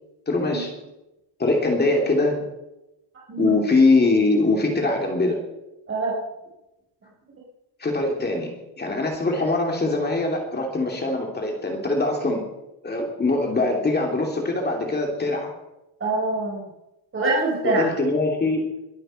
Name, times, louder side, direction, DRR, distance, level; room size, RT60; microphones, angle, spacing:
voice 1, 0.3-0.7 1.4-2.4 3.4-5.4 7.8-12.4 12.8-15.5 17.6-18.7, left 2 dB, 20° left, 1 dB, 2.8 m, -22 dB
voice 2, 16.0-16.6 17.1-17.9, right 3 dB, 30° right, -4 dB, 4.6 m, -24 dB
22.5 x 7.8 x 6.3 m, 0.94 s
cardioid pair, 140°, 43 cm